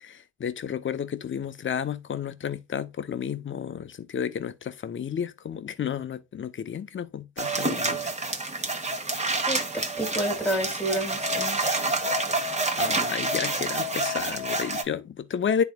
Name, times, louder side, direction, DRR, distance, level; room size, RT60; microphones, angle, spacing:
voice 1, 0.0-8.1 12.3-15.6, left 8 dB, 40° left, 0.8 m, -32 dB
sound 1, 7.4-14.8, right 2 dB, 20° right, 1.4 m, -28 dB
voice 2, 9.5-11.6, equal, 5° left, 2.1 m, -29 dB
10.5 x 4.1 x 2.4 m
cardioid pair, 90°, 30 cm